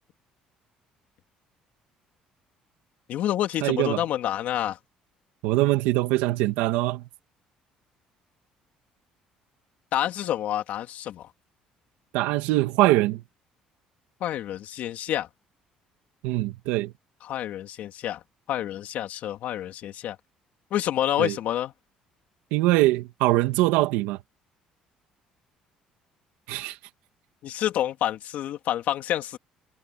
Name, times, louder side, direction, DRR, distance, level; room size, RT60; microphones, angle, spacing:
voice 1, 3.1-4.8 9.9-11.3 14.2-15.3 17.2-18.2 18.5-20.2 20.7-21.7 27.4-29.4, left 12 dB, 65° left, 2.5 m, -28 dB
voice 2, 3.6-4.0 5.4-7.0 12.1-13.2 16.2-16.9 21.2-21.4 22.5-24.2 26.5-26.8, right 18 dB, 90° right, 2.1 m, -23 dB
supercardioid pair, 90°, 3 cm